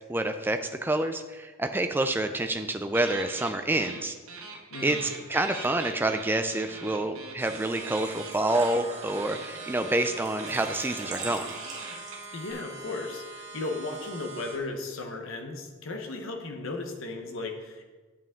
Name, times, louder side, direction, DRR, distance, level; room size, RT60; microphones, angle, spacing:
voice 1, 0.1-4.1 4.8-11.6, right 2 dB, 10° right, 7 dB, 0.4 m, -28 dB
sound 1, 2.9-4.0 4.3-12.5, right 4 dB, 80° right, 1.2 m, -41 dB
voice 2, 4.7-5.1 12.3-17.8, left 2 dB, 70° left, 3 dB, 1.0 m, -36 dB
sound 2, 7.4-14.6, right 4 dB, 60° right, 1.8 m, -43 dB
Engine / Trickle dribble / Fill (with liquid), 7.6-12.4, right 3 dB, 35° right, 1.6 m, -43 dB
8.2 x 7.1 x 3.8 m, 1.3 s
head